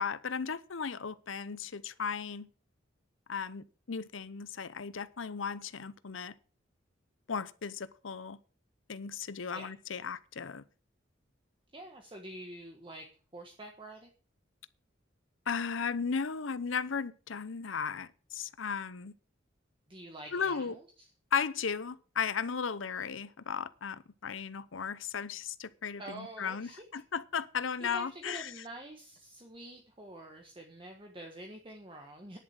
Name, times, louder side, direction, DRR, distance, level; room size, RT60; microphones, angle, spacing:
voice 1, 0.0-2.5 3.3-6.3 7.3-8.4 8.9-10.6 15.5-19.1 20.3-20.7 21.3-28.5, left 6 dB, 90° left, 0.7 m, -36 dB
voice 2, 11.7-14.1 19.9-21.1 26.0-26.8 27.8-32.4, right 1 dB, 25° right, 1.4 m, -47 dB
10.5 x 7.4 x 7.3 m
head